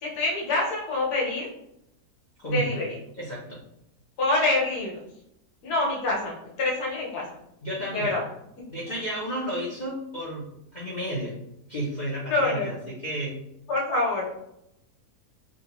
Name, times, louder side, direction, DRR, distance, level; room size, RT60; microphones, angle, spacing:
voice 1, 0.0-1.5 2.4-3.0 4.2-5.0 5.6-7.2 7.9-8.2 12.3-12.8 13.7-14.5, left 2 dB, 75° left, -4 dB, 1.5 m, -26 dB
voice 2, 2.4-2.8 3.2-3.6 7.6-8.2 8.7-11.4 11.7-13.4, right 1 dB, 55° left, -6 dB, 0.5 m, -32 dB
3.7 x 2.3 x 2.8 m, 0.82 s
omnidirectional pair, 1.7 m